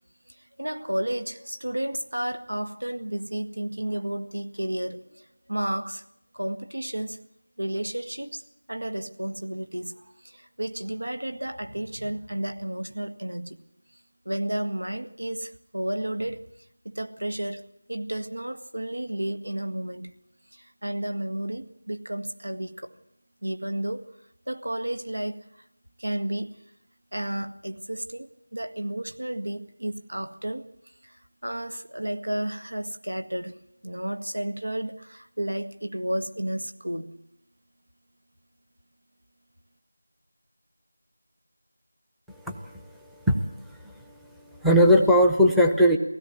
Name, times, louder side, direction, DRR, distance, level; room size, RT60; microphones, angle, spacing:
voice 1, 0.4-6.0 6.3-7.2 7.6-13.6 14.3-16.5 16.8-20.1 20.5-23.0 23.4-24.0 24.5-25.4 26.0-26.6 27.1-30.7 31.0-33.6 33.8-37.2, right 1 dB, 90° right, 1.8 m, -32 dB
voice 2, 42.4-42.8 43.3-44.0 44.5-46.0, equal, ahead, 0.7 m, -20 dB
23.0 x 16.5 x 7.9 m
figure-of-eight pair, 170°, 0 cm